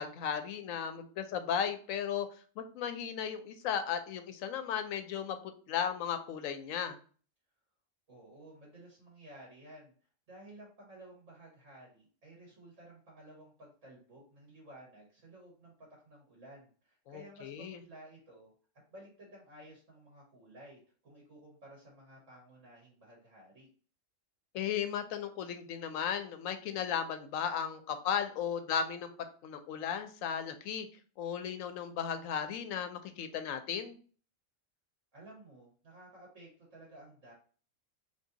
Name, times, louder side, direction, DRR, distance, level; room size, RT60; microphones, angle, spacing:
voice 1, 0.0-2.3 2.6-7.0 17.1-17.8 24.5-29.1 29.4-30.9 31.2-34.0, left 8 dB, 85° left, 8 dB, 1.0 m, -35 dB
voice 2, 8.1-9.9 10.3-15.7 16.0-18.5 18.9-23.7 35.1-37.3, right 1 dB, 70° right, -4 dB, 1.9 m, -54 dB
3.5 x 2.7 x 3.8 m, 0.41 s
omnidirectional pair, 1.3 m